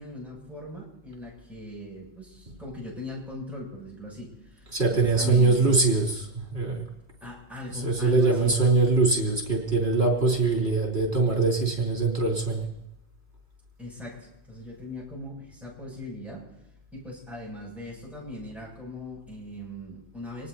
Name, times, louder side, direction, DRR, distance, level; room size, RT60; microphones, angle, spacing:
voice 1, 0.0-5.6 7.2-8.5 13.8-16.4 16.9-20.5, left 1 dB, ahead, -5 dB, 7.3 m, -40 dB
voice 2, 4.7-6.9 7.7-12.7, right 3 dB, 65° right, -2 dB, 3.5 m, -23 dB
26.0 x 19.5 x 2.8 m, 0.85 s
omnidirectional pair, 1.1 m